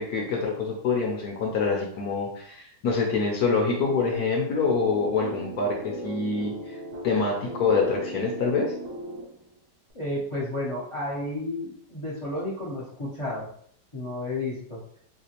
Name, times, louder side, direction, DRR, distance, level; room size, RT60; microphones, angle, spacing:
voice 1, 0.0-6.8 7.0-8.7, left 4 dB, 65° left, -1 dB, 1.0 m, -26 dB
sound 1, 3.6-9.6, right 2 dB, 75° right, 1.3 m, -38 dB
voice 2, 9.9-13.5 13.9-14.8, left 1 dB, 40° left, -6 dB, 0.4 m, -32 dB
3.4 x 2.8 x 2.9 m, 0.63 s
omnidirectional pair, 1.9 m